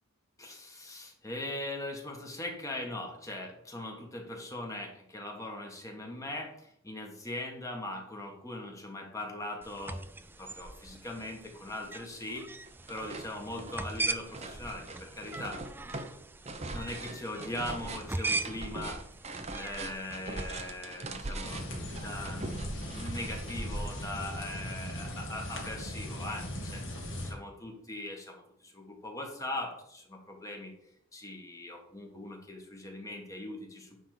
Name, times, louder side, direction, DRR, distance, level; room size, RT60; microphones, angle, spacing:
voice 1, 0.4-12.5 12.9-15.6 16.7-19.0 19.3-30.7 31.1-34.0, left 1 dB, 15° left, 1 dB, 1.5 m, -40 dB
sound 1, 9.6-20.9, right 3 dB, 10° right, 0.3 m, -40 dB
sound 2, 11.2-11.3 11.7-12.4 12.7-24.3, right 2 dB, 30° right, 0.8 m, -41 dB
sound 3, 21.4-27.3, left 1 dB, 60° left, 2.1 m, -39 dB
10.0 x 3.7 x 6.6 m, 0.75 s
head